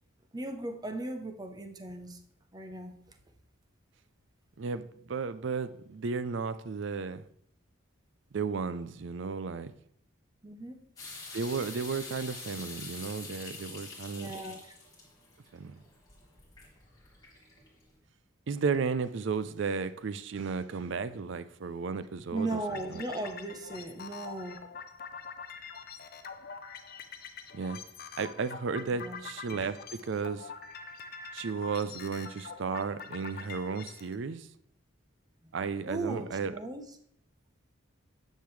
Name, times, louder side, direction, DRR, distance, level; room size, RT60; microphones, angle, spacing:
voice 1, 0.3-2.2 2.5-2.9 10.4-10.8 14.1-14.7 22.3-24.6 29.0-29.2 35.9-36.8, right 2 dB, 20° right, 6 dB, 0.7 m, -37 dB
voice 2, 4.6-7.2 8.3-9.7 11.3-14.3 15.5-15.8 18.5-22.6 22.9-23.1 27.5-27.8 28.2-30.5 31.3-34.5 35.5-36.6, right 5 dB, 60° right, 14 dB, 0.4 m, -34 dB
sound 1, 11.0-17.8, left 3 dB, 15° left, 2.5 m, -46 dB
sound 2, 22.4-34.1, left 5 dB, 45° left, 0.6 m, -45 dB
10.0 x 6.5 x 3.2 m, 0.67 s
head